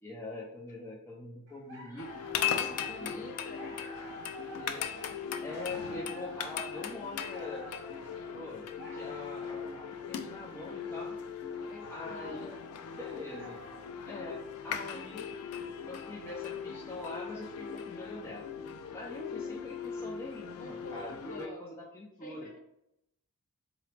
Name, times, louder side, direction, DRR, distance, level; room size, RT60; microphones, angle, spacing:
voice 1, 0.0-3.2 4.4-4.9 5.4-11.2 11.9-12.5 13.0-13.6 14.1-15.3 15.9-18.4 18.9-22.5, left 2 dB, 10° left, -4 dB, 0.5 m, -44 dB
sound 1, 1.5-13.9, equal, 55° right, 1.4 m, -50 dB
sound 2, 2.0-21.5, left 7 dB, 80° left, 0.4 m, -39 dB
voice 2, 2.9-3.9 11.6-12.8 20.6-21.6 22.2-22.6, left 1 dB, 35° left, 0 dB, 0.8 m, -48 dB
3.9 x 2.9 x 3.2 m, 0.82 s
head